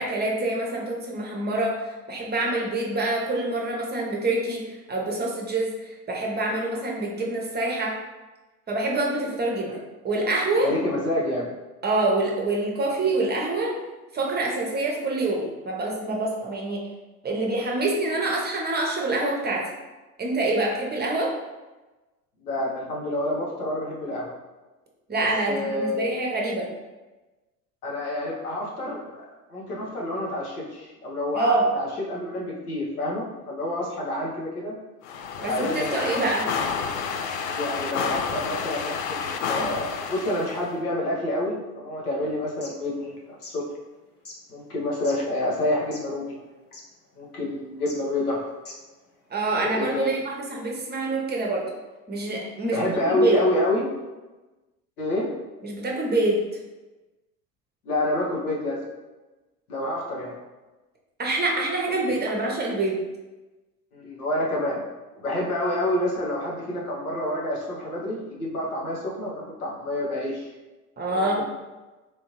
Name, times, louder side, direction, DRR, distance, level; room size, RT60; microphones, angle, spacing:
voice 1, 0.0-8.0 8.7-9.8 10.0-10.7 11.8-13.8 14.1-16.8 17.2-19.7 20.2-21.3 25.1-26.7 31.3-31.7 35.4-36.5 49.3-51.7 52.1-53.4 55.6-56.4 61.2-63.0 71.0-71.4, right 2 dB, 20° right, -1 dB, 0.8 m, -26 dB
voice 2, 10.6-11.5 22.4-24.3 25.5-26.2 27.8-29.0 29.5-34.7 35.4-36.0 37.5-43.1 43.5-43.6 44.5-46.3 47.2-48.5 49.5-50.2 52.7-53.8 55.0-55.3 57.8-58.8 59.7-60.3 63.9-64.8 65.2-70.5 71.1-71.5, left 1 dB, 85° left, -4 dB, 1.0 m, -28 dB
sound 1, 35.0-40.7, left 6 dB, 55° left, 0.5 m, -30 dB
sound 2, 42.4-42.7 43.3-43.5 44.2-44.4 45.0-45.2 45.8-46.1 46.4-46.5 46.7-46.9 47.8-48.0 48.5-48.9, left 2 dB, 30° left, 0.9 m, -42 dB
3.4 x 2.6 x 2.9 m, 1.1 s
hypercardioid pair, 70°, 44 cm